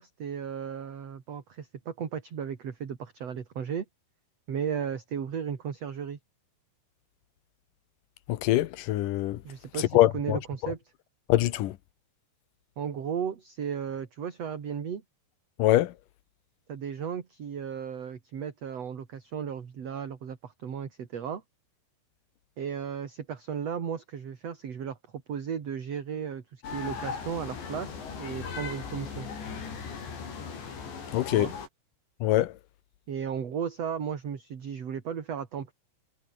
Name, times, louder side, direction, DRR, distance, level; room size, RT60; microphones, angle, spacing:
voice 1, 0.0-3.8 4.5-6.2 9.4-10.8 12.8-15.0 16.7-21.4 22.6-25.0 25.3-29.3 31.3-31.5 33.1-35.7, right 7 dB, 45° right, 3.0 m, -35 dB
voice 2, 8.3-9.4 9.9-10.4 11.3-11.7 15.6-15.9 31.1-31.5 32.2-32.5, left 15 dB, 70° left, 2.1 m, -23 dB
sound 1, 26.6-31.7, left 6 dB, 90° left, 7.8 m, -38 dB
omnidirectional pair, 5.0 m